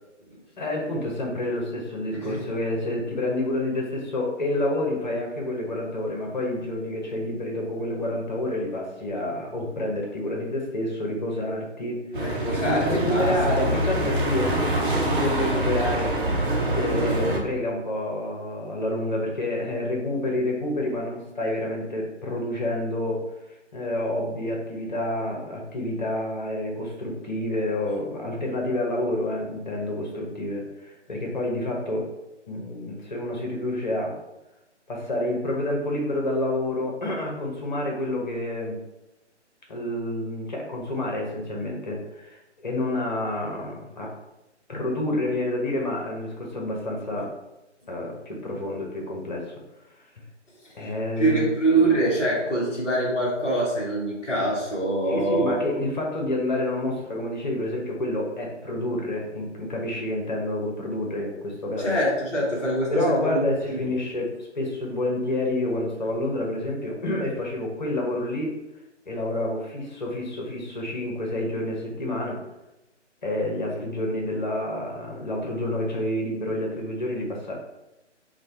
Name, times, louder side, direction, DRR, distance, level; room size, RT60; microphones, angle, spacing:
voice 1, 0.6-16.4 16.7-23.2 23.5-32.1 32.5-34.1 34.9-38.8 39.7-44.1 44.7-47.3 47.9-49.5 50.7-51.5 55.1-62.0 62.9-68.6 69.1-72.4 73.2-77.5, left 1 dB, 40° left, -1 dB, 0.9 m, -28 dB
voice 2, 12.1-13.7 50.8-50.9 51.2-55.6 61.8-63.4 63.7-63.9, right 2 dB, 10° left, -10 dB, 0.8 m, -24 dB
sound 1, 12.1-17.4, right 1 dB, 45° right, 1.0 m, -25 dB
5.0 x 2.3 x 4.3 m, 0.97 s
figure-of-eight pair, 150°, 36 cm